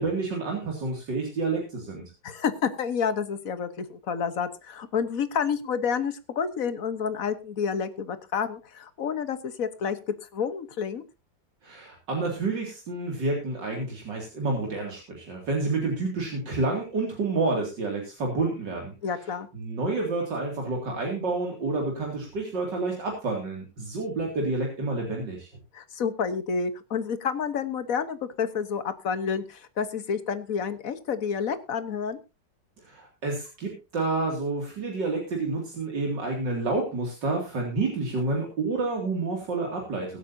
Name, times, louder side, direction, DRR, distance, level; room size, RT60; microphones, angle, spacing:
voice 1, 0.0-2.0 11.6-18.9 19.5-25.5 32.8-40.2, right 3 dB, 70° right, 0 dB, 3.2 m, -29 dB
voice 2, 2.2-10.0 10.3-11.0 19.0-19.5 25.7-32.2, left 6 dB, 50° left, 11 dB, 1.5 m, -29 dB
22.5 x 8.4 x 2.7 m, 0.29 s
omnidirectional pair, 2.0 m